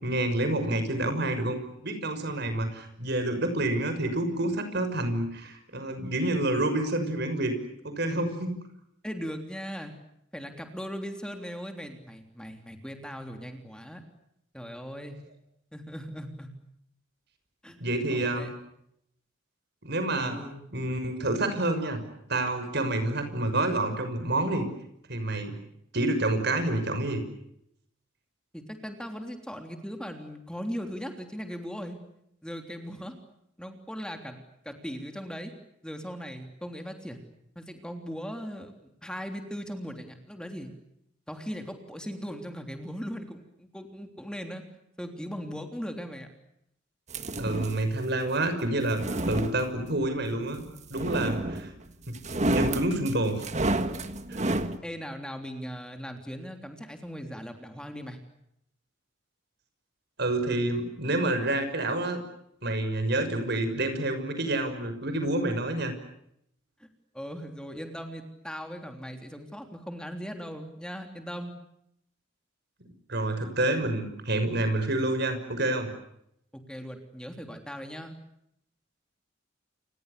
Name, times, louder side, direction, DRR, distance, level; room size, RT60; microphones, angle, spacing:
voice 1, 0.0-7.5 7.8-8.5 17.8-18.5 19.8-20.4 20.7-22.0 22.3-24.6 25.1-25.5 25.9-27.2 47.4-50.6 50.9-51.7 52.3-53.4 54.3-54.4 60.2-62.2 62.6-65.9 73.1-75.9, right 1 dB, 55° right, 8 dB, 6.3 m, -28 dB
voice 2, 9.0-9.9 10.3-14.0 14.5-15.2 15.7-16.5 17.6-17.8 18.1-18.5 20.1-20.6 28.5-32.0 32.4-33.1 33.6-35.5 35.8-37.3 37.5-40.7 41.3-44.6 45.0-46.3 54.4-54.6 54.8-58.2 66.8-66.9 67.1-71.5 76.7-78.2, equal, 5° left, 5 dB, 3.3 m, -39 dB
sound 1, 47.1-47.9 48.8-50.0 50.9-51.8 52.1-54.8, right 1 dB, 35° right, 1.8 m, -30 dB
30.0 x 27.5 x 6.8 m, 0.77 s
head